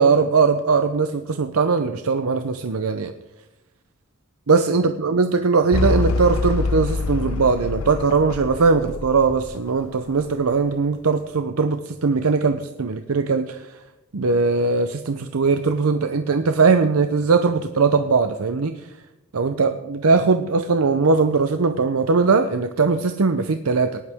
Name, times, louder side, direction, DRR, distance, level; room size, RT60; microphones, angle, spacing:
voice 1, 0.0-3.1 4.5-13.7 14.1-18.7 19.3-24.0, right 4 dB, 90° right, 9 dB, 0.7 m, -20 dB
sound 1, 5.7-10.3, left 3 dB, 80° left, 0.8 m, -25 dB
19.0 x 11.0 x 3.6 m, 1.0 s
head